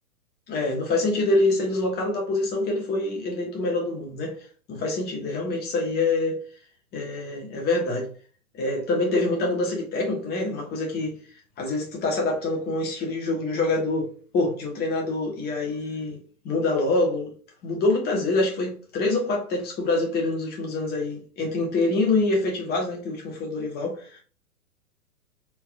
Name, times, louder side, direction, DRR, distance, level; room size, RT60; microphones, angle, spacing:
voice 1, 0.5-6.4 6.9-8.1 8.5-11.2 11.6-14.1 14.3-16.2 16.4-17.3 17.6-24.2, left 2 dB, 20° left, 1.5 m, -25 dB
4.3 x 3.9 x 2.4 m
figure-of-eight pair, 115°, 44 cm